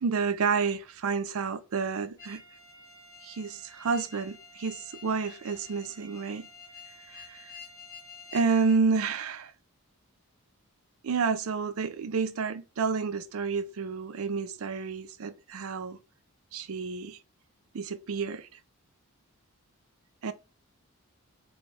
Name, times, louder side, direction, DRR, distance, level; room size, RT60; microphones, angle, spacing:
voice 1, 0.0-2.4 3.2-6.5 7.1-7.5 8.3-9.5 11.0-16.0 16.5-17.2 17.7-18.5 20.2-20.3, right 5 dB, 70° right, 0.4 m, -30 dB
sound 1, 2.2-8.8, left 5 dB, 15° left, 2.0 m, -49 dB
4.3 x 2.2 x 3.2 m
head